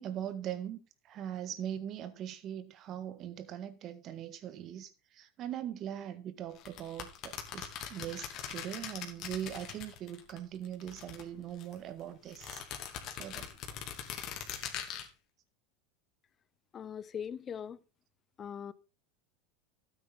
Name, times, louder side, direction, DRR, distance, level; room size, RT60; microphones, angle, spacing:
voice 1, 0.0-12.6 13.2-13.5, right 10 dB, 45° right, 1.6 m, -41 dB
sound 1, 6.6-10.4 10.6-11.8 12.3-15.1, left 9 dB, 45° left, 2.8 m, -42 dB
voice 2, 16.7-17.8 18.4-18.7, left 8 dB, 30° left, 0.8 m, -40 dB
12.5 x 9.0 x 3.9 m
hypercardioid pair, 105°, 0 cm